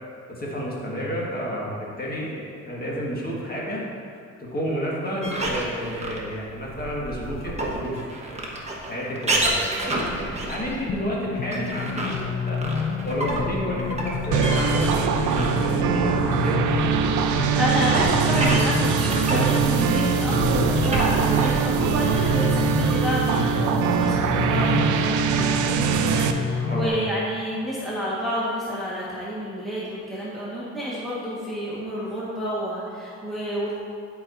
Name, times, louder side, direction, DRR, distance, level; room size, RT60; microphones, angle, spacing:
voice 1, 0.3-3.8 4.4-7.9 8.3-8.4 8.8-12.6 13.0-16.6 26.6-26.9, equal, 30° left, -4 dB, 1.6 m, -31 dB
sound 1, 5.2-15.9 16.2-23.0, right 1 dB, 20° right, 1.2 m, -30 dB
sound 2, 10.9-26.9, left 6 dB, 65° left, 0.6 m, -29 dB
sound 3, 14.3-26.3, right 7 dB, 75° right, 0.5 m, -22 dB
voice 2, 17.5-33.8, equal, ahead, -9 dB, 1.4 m, -29 dB
10.5 x 4.6 x 2.6 m, 2.3 s
cardioid pair, 90°, 30 cm